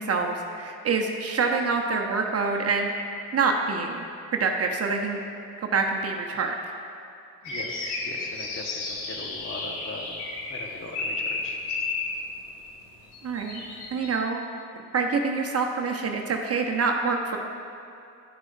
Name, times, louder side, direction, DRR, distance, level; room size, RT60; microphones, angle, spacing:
voice 1, 0.0-2.9 3.3-5.2 5.7-6.5 13.2-13.6 13.9-14.4 14.9-17.4, right 4 dB, 40° right, 2 dB, 0.8 m, -26 dB
sound 1, 7.4-12.3 13.1-14.2, left 3 dB, 85° left, 1.0 m, -33 dB
voice 2, 7.4-10.2 10.5-11.6, left 2 dB, 35° left, 1 dB, 1.1 m, -39 dB
10.0 x 6.1 x 2.6 m, 2.7 s
supercardioid pair, 65°, 38 cm